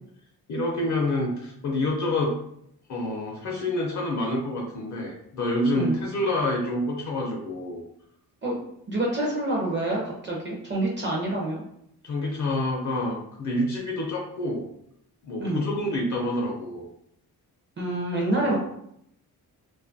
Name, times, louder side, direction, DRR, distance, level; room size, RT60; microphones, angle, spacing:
voice 1, 0.5-2.4 2.9-7.8 12.0-14.7 15.2-16.9 18.4-18.6, left 1 dB, 50° left, -1 dB, 0.5 m, -27 dB
voice 2, 8.9-11.6 15.4-15.6 17.8-18.6, right 1 dB, 30° right, -2 dB, 0.5 m, -27 dB
2.5 x 2.3 x 2.5 m, 0.73 s
wide cardioid pair, 150°, 38 cm